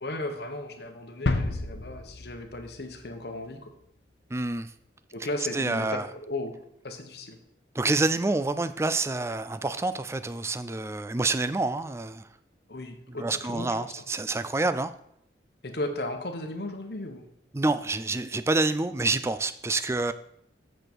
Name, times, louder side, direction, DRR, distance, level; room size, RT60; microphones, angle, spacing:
voice 1, 0.0-3.7 5.1-6.5 6.8-7.4 12.7-13.9 15.6-17.3, left 1 dB, 65° left, 6 dB, 1.1 m, -35 dB
sound 1, 1.3-3.1 3.4-3.5, left 2 dB, 80° left, 0.7 m, -31 dB
voice 2, 4.3-4.7 5.5-6.1 7.7-12.2 13.2-14.9 17.5-20.1, right 2 dB, 15° right, 13 dB, 0.3 m, -27 dB
7.7 x 6.5 x 4.5 m, 0.73 s
head